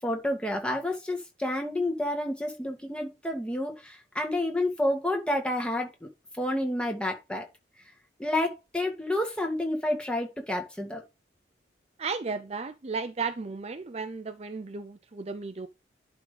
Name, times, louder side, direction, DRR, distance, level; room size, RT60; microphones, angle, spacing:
voice 1, 0.0-6.1 6.4-7.5 8.2-11.0, left 1 dB, 5° left, 1.9 m, -29 dB
voice 2, 12.0-15.7, right 4 dB, 35° right, 0.5 m, -34 dB
11.0 x 3.8 x 5.0 m
head